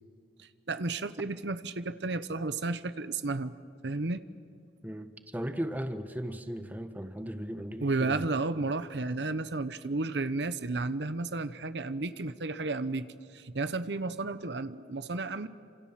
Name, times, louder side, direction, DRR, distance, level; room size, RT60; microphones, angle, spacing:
voice 1, 0.4-3.5 3.8-4.2 7.8-15.5, right 3 dB, 75° right, 13 dB, 1.0 m, -32 dB
voice 2, 4.8-8.2, equal, 10° right, 8 dB, 1.4 m, -37 dB
28.0 x 27.0 x 7.5 m, 2.4 s
head